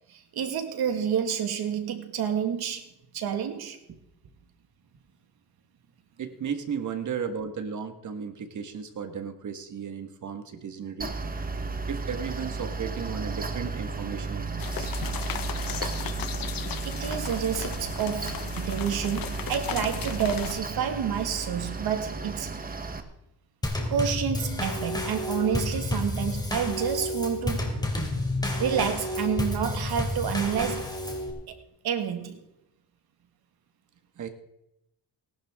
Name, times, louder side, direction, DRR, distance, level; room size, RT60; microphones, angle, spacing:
voice 1, 0.1-2.9 3.1-3.8 16.8-22.8 23.8-27.7 28.6-30.9 31.8-32.4, right 8 dB, 65° right, 2.1 m, -29 dB
voice 2, 6.2-11.1 11.9-14.9 34.2-34.3, right 6 dB, 45° right, 1.8 m, -35 dB
Mechanical fan, 11.0-23.0, right 4 dB, 20° right, 1.4 m, -34 dB
sound 1, 14.6-20.6, left 9 dB, 55° left, 1.1 m, -36 dB
Drum kit / Snare drum / Bass drum, 23.6-31.3, left 1 dB, 10° left, 3.0 m, -30 dB
18.5 x 11.5 x 3.7 m
cardioid pair, 125°, 40 cm